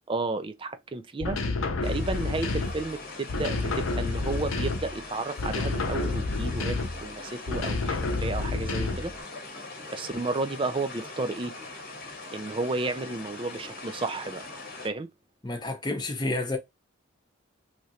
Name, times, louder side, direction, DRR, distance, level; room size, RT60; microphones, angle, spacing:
voice 1, 0.1-1.4 1.8-9.2 9.9-11.5 12.3-14.4 14.8-15.1, right 3 dB, 25° right, 0.4 m, -32 dB
sound 1, 1.2-2.9 3.3-5.0 5.4-7.1 7.5-9.2, left 3 dB, 80° left, 0.6 m, -29 dB
sound 2, 1.8-14.9, left 3 dB, 45° left, 0.9 m, -41 dB
voice 2, 15.4-16.6, left 2 dB, 20° left, 0.7 m, -30 dB
3.2 x 2.5 x 2.8 m
head